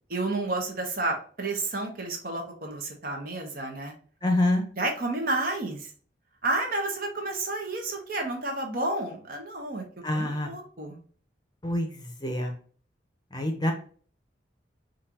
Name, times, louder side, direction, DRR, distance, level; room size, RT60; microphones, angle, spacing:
voice 1, 0.1-3.9 4.8-5.9 6.4-9.8 10.1-11.0, right 2 dB, 50° right, 1 dB, 1.1 m, -31 dB
voice 2, 4.2-4.6 10.0-10.5 11.6-12.5 13.3-13.7, left 1 dB, 20° left, 4 dB, 0.8 m, -26 dB
5.4 x 2.6 x 2.8 m, 0.43 s
head